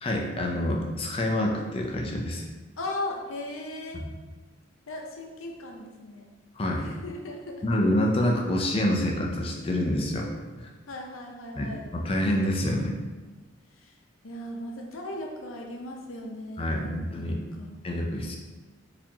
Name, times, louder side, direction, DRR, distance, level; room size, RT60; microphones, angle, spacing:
voice 1, 0.0-2.4 3.9-4.1 6.6-6.9 7.6-10.7 11.6-12.9 16.6-17.4 17.8-18.4, left 1 dB, 30° left, 0 dB, 0.4 m, -27 dB
voice 2, 2.8-4.1 4.9-6.3 6.8-7.6 10.9-11.9 13.8-13.9 14.2-17.7, left 1 dB, 90° left, 1 dB, 0.6 m, -37 dB
4.1 x 2.8 x 2.8 m, 1.3 s
head